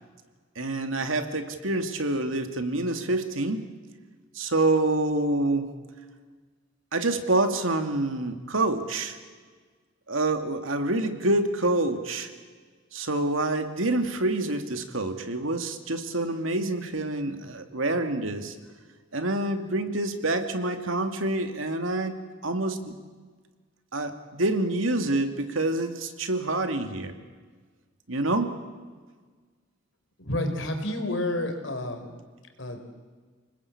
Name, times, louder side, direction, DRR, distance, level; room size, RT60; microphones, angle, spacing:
voice 1, 0.6-3.6 4.3-5.7 6.9-9.2 10.1-12.3 12.9-18.5 19.1-23.0 23.9-27.1 28.1-28.6, right 2 dB, 90° right, 6 dB, 2.5 m, -27 dB
voice 2, 30.2-32.1 32.6-32.8, left 1 dB, 70° left, 5 dB, 4.2 m, -30 dB
29.5 x 20.0 x 8.6 m, 1.5 s
head